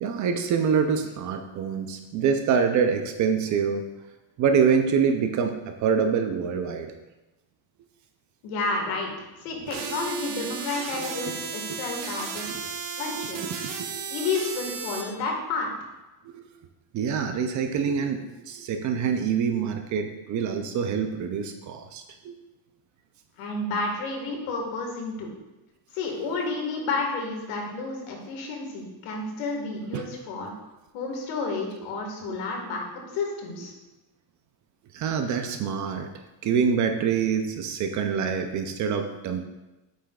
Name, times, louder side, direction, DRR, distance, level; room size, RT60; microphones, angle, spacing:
voice 1, 0.0-3.9 4.4-6.9 9.7-10.1 11.0-11.3 11.7-11.8 12.5-12.6 13.2-14.0 16.2-16.4 16.9-22.4 29.9-30.1 32.3-32.4 34.9-36.1 36.4-39.4, right 6 dB, 40° right, 6 dB, 0.4 m, -26 dB
voice 2, 8.4-12.7 13.0-13.6 14.1-15.7 23.4-25.3 25.9-30.5 30.9-33.7, left 3 dB, 80° left, 1 dB, 1.8 m, -31 dB
sound 1, 9.7-15.0, right 6 dB, 75° right, 1.2 m, -34 dB
8.2 x 5.7 x 2.3 m, 1.0 s
cardioid pair, 155°, 49 cm